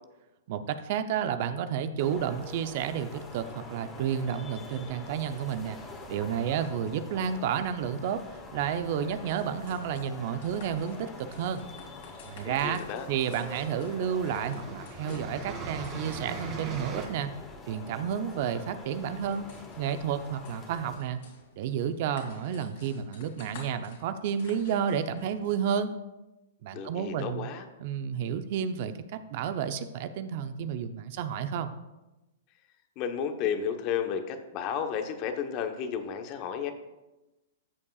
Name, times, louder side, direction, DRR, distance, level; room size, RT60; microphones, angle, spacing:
voice 1, 0.5-5.8 6.1-8.2 8.5-11.6 12.2-12.8 13.1-17.3 17.7-19.5 19.8-21.2 21.6-25.9 26.6-27.5 27.8-28.9 29.3-31.7, right 8 dB, 55° right, 10 dB, 0.6 m, -31 dB
sound 1, 2.0-21.0, left 3 dB, 20° left, 1.6 m, -45 dB
sound 2, 9.0-25.5, left 4 dB, 65° left, 2.7 m, -53 dB
sound 3, 11.7-12.5 13.4-13.5 13.8-17.1, right 4 dB, 35° right, 2.4 m, -40 dB
voice 2, 12.4-13.1 26.7-27.7 33.0-36.7, left 7 dB, 40° left, 6 dB, 1.0 m, -32 dB
13.0 x 7.2 x 2.4 m, 1.0 s
hypercardioid pair, 125°, 0 cm